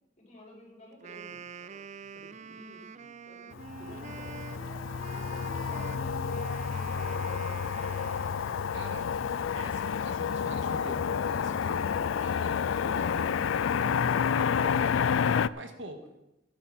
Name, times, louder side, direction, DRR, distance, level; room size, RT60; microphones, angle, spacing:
voice 1, 0.2-6.1 6.4-7.6, equal, 40° left, -3 dB, 5.7 m, -53 dB
Wind instrument woodwind instrument, 0.9-9.0, right 6 dB, 40° right, 0.4 m, -46 dB
Motor vehicle (road), 3.6-15.5, left 7 dB, 85° left, 0.4 m, -29 dB
voice 2, 8.7-9.1 9.5-14.8 15.2-16.1, right 1 dB, 75° right, 5 dB, 1.9 m, -46 dB
15.0 x 11.0 x 4.3 m, 0.91 s
head